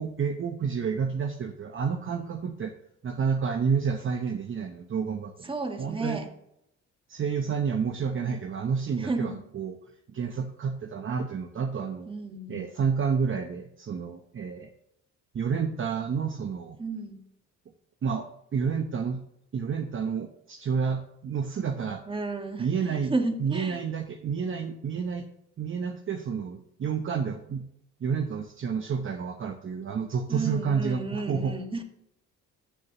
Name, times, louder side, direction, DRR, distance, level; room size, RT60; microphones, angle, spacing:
voice 1, 0.0-2.7 3.0-5.5 5.8-6.2 7.1-9.7 10.1-12.1 12.5-14.7 15.3-16.8 18.0-19.2 19.5-22.0 22.6-23.1 23.4-25.3 25.6-27.6 28.0-31.5, right 6 dB, 40° right, 5 dB, 0.8 m, -30 dB
voice 2, 5.5-6.3 9.0-9.4 12.1-12.6 16.8-17.2 22.1-22.7 23.1-23.8 30.3-31.8, right 3 dB, 15° right, 4 dB, 1.6 m, -32 dB
14.0 x 6.7 x 2.9 m, 0.77 s
cardioid pair, 90°, 30 cm